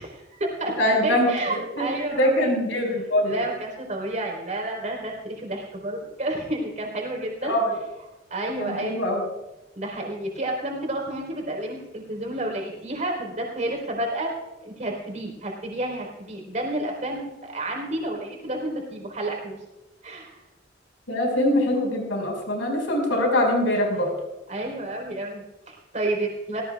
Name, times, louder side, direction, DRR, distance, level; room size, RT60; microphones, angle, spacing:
voice 1, 0.0-0.7 1.0-2.3 3.2-7.5 8.3-9.0 9.7-14.3 14.6-19.6 20.0-20.4 24.5-26.6, right 1 dB, 40° right, 0 dB, 4.2 m, -30 dB
voice 2, 0.8-1.3 1.8-1.9 2.2-3.3 7.4-7.7 8.6-9.2 21.1-24.1, left 1 dB, 90° left, 1 dB, 5.3 m, -23 dB
18.5 x 18.0 x 2.4 m, 0.99 s
head